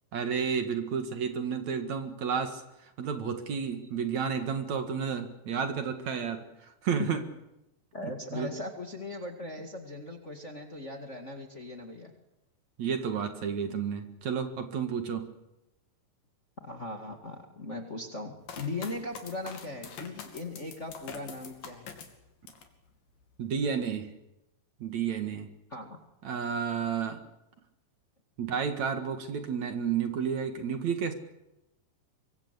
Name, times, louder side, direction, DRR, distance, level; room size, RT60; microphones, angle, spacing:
voice 1, 0.1-2.6 3.0-6.5 6.8-7.2 8.0-8.5 12.8-15.3 23.4-24.1 24.8-25.5 26.2-27.2 28.4-31.1, right 6 dB, 60° right, 7 dB, 3.0 m, -31 dB
voice 2, 7.9-12.1 16.6-21.9 25.7-26.0, left 2 dB, 25° left, 3 dB, 1.9 m, -39 dB
sound 1, 18.5-22.8 23.2-23.8, left 6 dB, 85° left, 4.3 m, -45 dB
25.0 x 23.5 x 8.3 m, 0.94 s
omnidirectional pair, 3.9 m